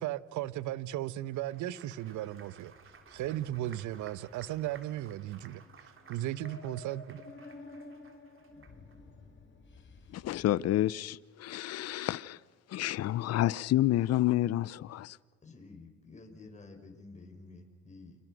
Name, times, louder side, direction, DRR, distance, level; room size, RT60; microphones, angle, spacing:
voice 1, 0.0-2.7 3.1-5.6 6.1-7.2, right 13 dB, 70° right, 1.1 m, -36 dB
Applause, 1.2-9.0, right 6 dB, 40° right, 3.2 m, -57 dB
sound 1, 2.3-10.5, left 2 dB, 40° left, 4.5 m, -53 dB
voice 2, 10.1-12.4 12.7-15.2, left 14 dB, 55° left, 0.7 m, -29 dB
voice 3, 15.4-18.2, left 3 dB, 25° left, 5.1 m, -51 dB
29.5 x 25.0 x 6.3 m
supercardioid pair, 85°, 31 cm